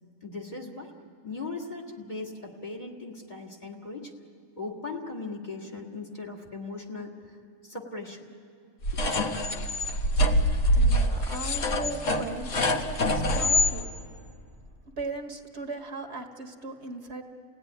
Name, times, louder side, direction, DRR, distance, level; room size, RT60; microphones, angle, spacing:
voice 1, 0.2-0.9 1.2-4.1 4.6-7.4 7.6-8.3 8.9-9.0, left 3 dB, 30° left, -1 dB, 2.1 m, -38 dB
sound 1, 8.8-13.7, left 1 dB, 60° left, 1.6 m, -25 dB
voice 2, 10.7-13.9 15.0-17.2, right 3 dB, 50° right, 3 dB, 1.7 m, -38 dB
29.0 x 17.0 x 10.0 m, 2.4 s
omnidirectional pair, 1.5 m